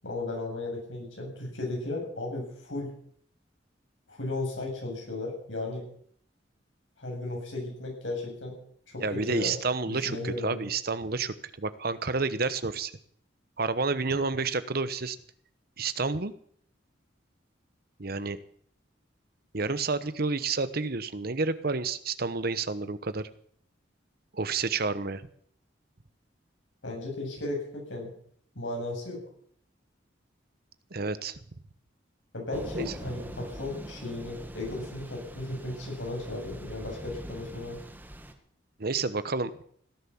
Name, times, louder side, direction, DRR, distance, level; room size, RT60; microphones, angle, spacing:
voice 1, 0.0-2.9 4.1-5.8 7.0-8.5 8.9-9.6 9.9-10.7 26.8-28.1 28.5-29.2 32.3-37.8, left 2 dB, 85° left, 0 dB, 7.7 m, -35 dB
voice 2, 9.0-12.9 13.6-15.2 15.8-16.3 18.0-18.4 19.5-23.3 24.3-25.2 30.9-31.4 32.7-32.8 38.8-39.6, right 4 dB, 55° right, 14 dB, 1.0 m, -30 dB
Thunder / Rain, 32.5-38.3, equal, 10° right, 1.6 m, -42 dB
17.5 x 10.5 x 7.2 m, 0.62 s
head